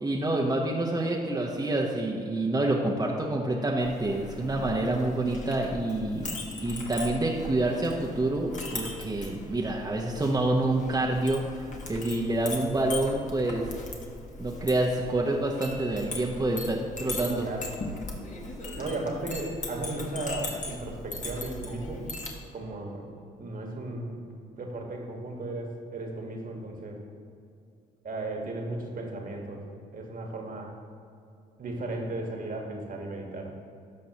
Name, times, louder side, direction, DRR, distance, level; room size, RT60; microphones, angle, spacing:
voice 1, 0.0-6.3 6.6-11.4 11.9-13.7 14.4-17.5, right 2 dB, 20° right, -2 dB, 1.0 m, -27 dB
Chink clink, 3.8-22.4, left 2 dB, 40° left, 1.5 m, -39 dB
voice 2, 17.2-17.7 18.8-22.1 22.5-23.1 23.3-24.2 24.6-27.0 28.0-30.7 31.6-33.5, right 2 dB, 45° right, 1 dB, 1.6 m, -35 dB
13.0 x 5.3 x 2.9 m, 2.5 s
hypercardioid pair, 50°, 19 cm